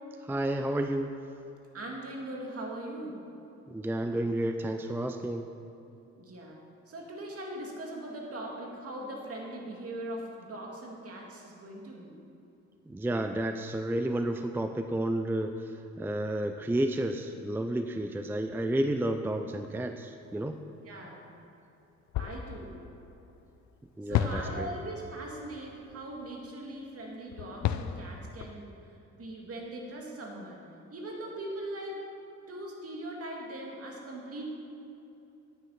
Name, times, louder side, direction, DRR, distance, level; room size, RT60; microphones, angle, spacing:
voice 1, 0.2-1.1 3.7-5.5 12.9-20.6 24.0-24.7, right 1 dB, 5° right, 6 dB, 0.4 m, -31 dB
voice 2, 1.7-3.2 6.2-6.6 6.9-12.1 20.8-21.3 22.2-22.7 24.0-28.7 29.1-30.6 30.9-32.0 32.5-34.4, right 1 dB, 50° right, -1 dB, 2.4 m, -40 dB
sound 1, 22.1-23.4 24.1-26.5 27.3-28.5, left 10 dB, 65° left, 0.6 m, -34 dB
9.5 x 9.3 x 5.7 m, 2.8 s
cardioid pair, 90°, 30 cm